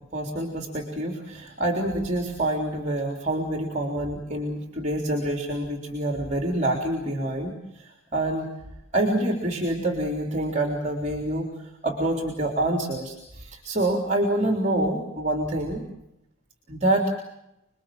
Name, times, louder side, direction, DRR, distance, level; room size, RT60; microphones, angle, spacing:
voice 1, 0.1-8.5 8.9-11.5 11.8-15.8 16.7-17.1, right 1 dB, 35° right, 3 dB, 3.6 m, -26 dB
28.0 x 22.0 x 7.7 m, 0.87 s
head